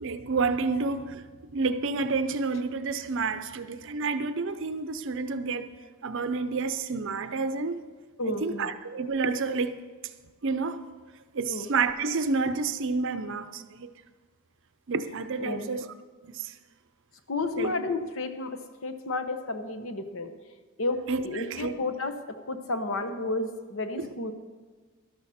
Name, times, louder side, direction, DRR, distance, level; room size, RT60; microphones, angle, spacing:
voice 1, 0.0-5.7 6.0-7.8 8.2-9.8 10.4-10.9 11.3-13.9 14.9-15.9 16.2-16.5 17.6-17.7 21.1-21.7 24.0-24.1, right 4 dB, 55° right, 0.6 m, -29 dB
voice 2, 8.2-8.7 11.5-11.7 15.4-15.7 17.3-20.3 20.8-24.3, left 2 dB, 60° left, 1.0 m, -32 dB
12.5 x 12.0 x 4.2 m
head